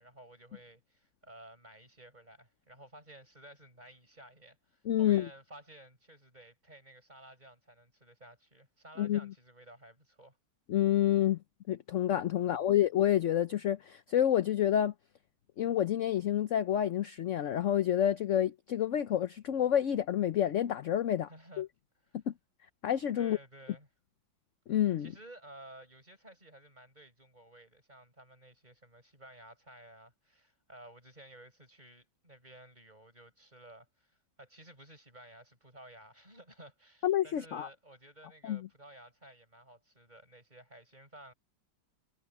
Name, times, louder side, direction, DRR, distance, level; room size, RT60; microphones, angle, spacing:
voice 1, 0.0-10.4 12.3-12.6 21.3-21.7 22.1-22.2 23.1-23.9 25.0-41.3, right 1 dB, 20° right, 7.6 m, -54 dB
voice 2, 4.8-5.3 9.0-9.2 10.7-11.4 11.7-14.9 15.6-21.3 21.6-21.7 22.3-22.4 22.8-23.4 24.7-25.1 37.0-37.7 38.4-38.7, left 11 dB, 60° left, 0.8 m, -28 dB
omnidirectional pair, 2.0 m